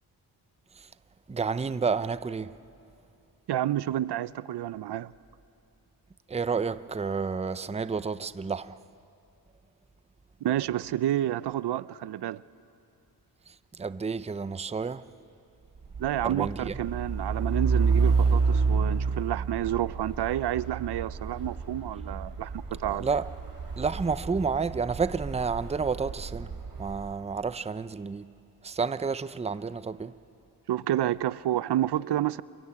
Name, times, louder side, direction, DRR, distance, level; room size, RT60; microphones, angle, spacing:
voice 1, 1.3-2.5 6.3-8.8 13.5-15.0 16.2-16.8 22.9-23.3 23.8-26.5 26.8-28.3 28.6-30.1, right 5 dB, 15° right, 0.6 m, -30 dB
voice 2, 3.5-5.1 10.4-12.4 16.0-23.1 30.7-32.4, right 12 dB, 75° right, 0.6 m, -29 dB
Truck, 15.8-27.2, right 4 dB, 55° right, 4.4 m, -29 dB
29.0 x 21.5 x 8.6 m
cardioid pair, 85°, 41 cm